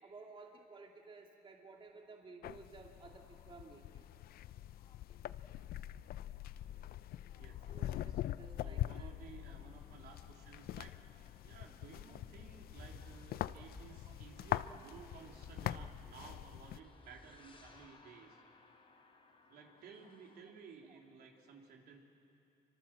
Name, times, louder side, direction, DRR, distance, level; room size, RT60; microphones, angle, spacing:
voice 1, 0.0-4.0 6.8-6.9 7.7-9.1 14.1-14.2 20.9-21.0, right 4 dB, 30° right, 1 dB, 2.4 m, -55 dB
sound 1, 2.4-16.8, left 13 dB, 65° left, 0.6 m, -43 dB
sound 2, 3.0-20.4, left 4 dB, 30° left, 3.9 m, -68 dB
voice 2, 7.4-8.2 8.6-10.9 11.4-18.4 19.5-22.0, right 5 dB, 70° right, 1 dB, 3.7 m, -56 dB
sound 3, 12.1-17.9, left 2 dB, 10° left, 2.0 m, -56 dB
27.5 x 25.0 x 7.5 m, 2.6 s
cardioid pair, 110°, 17 cm